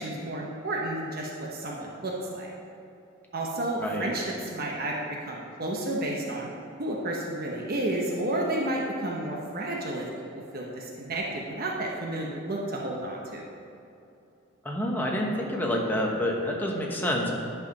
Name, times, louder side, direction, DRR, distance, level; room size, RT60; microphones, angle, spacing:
voice 1, 0.0-2.5 3.3-6.5 6.8-10.0 10.3-13.4, right 1 dB, 45° right, -2 dB, 0.9 m, -31 dB
voice 2, 14.6-17.3, equal, 10° left, -2 dB, 1.0 m, -28 dB
10.5 x 4.8 x 5.3 m, 2.7 s
head